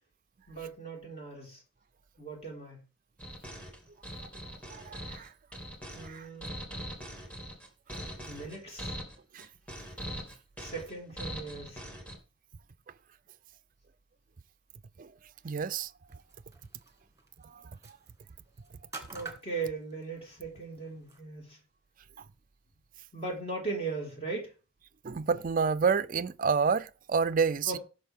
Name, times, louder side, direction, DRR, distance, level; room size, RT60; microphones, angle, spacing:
voice 1, 0.5-1.6 2.2-2.8 5.9-6.6 8.2-9.0 10.6-11.8 19.1-21.6 23.1-24.5 27.6-27.8, right 3 dB, 30° left, 4.8 m, -38 dB
sound 1, 3.2-12.2, equal, 5° left, 2.2 m, -41 dB
voice 2, 4.8-5.3 6.0-6.3 9.3-9.5 15.0-15.1 15.4-15.9 25.0-27.8, right 5 dB, 45° right, 0.5 m, -28 dB
sound 2, 16.1-21.2, right 4 dB, 15° right, 1.9 m, -50 dB
17.0 x 6.5 x 3.6 m
head